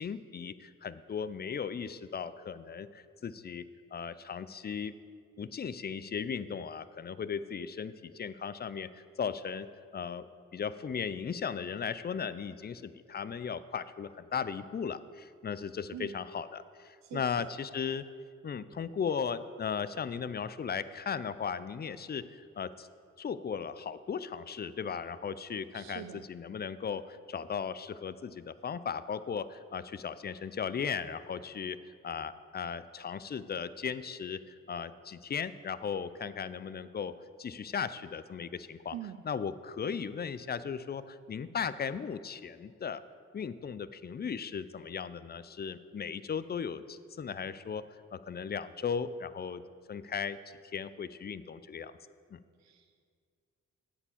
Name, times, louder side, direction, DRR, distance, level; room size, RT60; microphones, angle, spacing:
voice 1, 0.0-3.6 3.9-4.9 5.4-9.7 9.9-10.3 10.5-18.1 18.4-22.9 23.2-39.0 39.2-43.0 43.3-49.6 49.9-50.4 50.7-51.9 52.3-52.4, left 6 dB, 30° left, 15 dB, 0.4 m, -37 dB
voice 2, 17.0-17.5 25.7-26.3 38.9-39.2 52.6-52.9, right 11 dB, 60° right, 8 dB, 0.4 m, -44 dB
8.4 x 5.0 x 7.1 m, 2.1 s
supercardioid pair, 50°, 31 cm